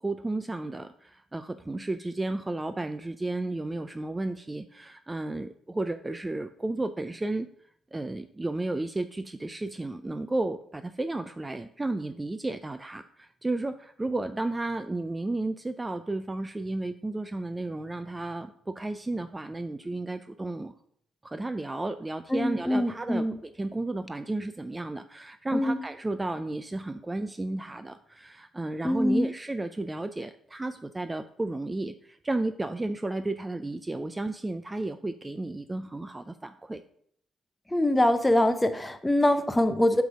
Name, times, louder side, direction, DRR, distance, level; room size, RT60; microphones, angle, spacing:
voice 1, 0.0-7.5 7.9-20.7 21.2-36.8, right 2 dB, 15° right, 9 dB, 0.4 m, -33 dB
voice 2, 22.3-23.3 25.5-25.8 28.8-29.3 37.7-40.0, left 1 dB, 10° left, 9 dB, 0.8 m, -24 dB
8.0 x 3.3 x 6.2 m, 0.66 s
cardioid pair, 90°, 0 cm